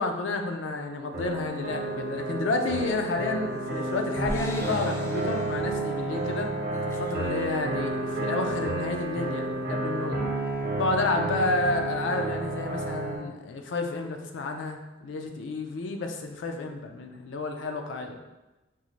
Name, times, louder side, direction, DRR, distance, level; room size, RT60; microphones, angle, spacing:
voice 1, 0.0-6.5 6.9-10.2 10.8-18.2, left 3 dB, 85° left, 4 dB, 0.4 m, -30 dB
sound 1, 1.1-13.1, right 2 dB, 50° right, 0.7 m, -31 dB
sound 2, 2.5-3.0 3.5-5.7 6.1-6.3 6.6-7.3, equal, 15° left, 0.4 m, -41 dB
3.7 x 2.5 x 3.0 m, 1.1 s
head